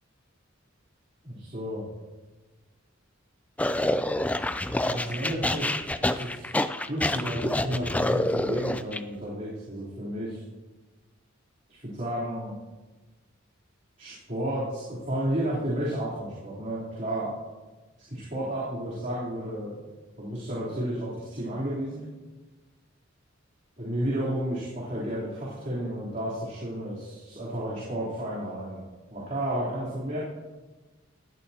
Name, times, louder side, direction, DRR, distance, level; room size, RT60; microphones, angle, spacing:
voice 1, 1.2-1.9 4.7-5.7 6.1-6.5 6.9-10.4 11.7-12.5 14.0-17.3 18.1-19.9 20.2-22.1 23.8-28.8 29.1-30.2, right 1 dB, 40° right, -9 dB, 3.5 m, -32 dB
sound 1, 3.6-9.0, left 1 dB, 5° left, 0.3 m, -27 dB
18.5 x 12.5 x 2.9 m, 1.2 s
head